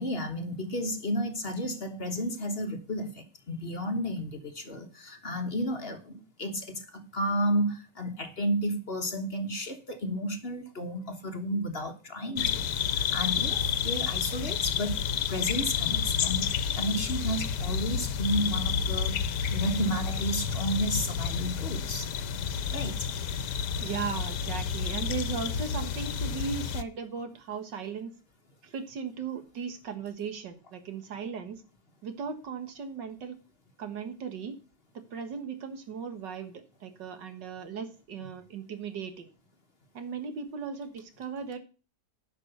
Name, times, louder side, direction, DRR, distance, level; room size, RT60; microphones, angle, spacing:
voice 1, 0.0-15.0 15.3-19.3 19.5-22.1 22.7-23.1, equal, 35° left, 1.3 m, -32 dB
sound 1, 12.4-26.8, left 7 dB, 75° left, 1.4 m, -30 dB
voice 2, 23.8-28.1 28.6-31.6 32.0-33.4 33.8-34.6 35.1-39.3 39.9-41.6, right 6 dB, 90° right, 2.2 m, -37 dB
11.0 x 5.9 x 6.7 m
omnidirectional pair, 1.9 m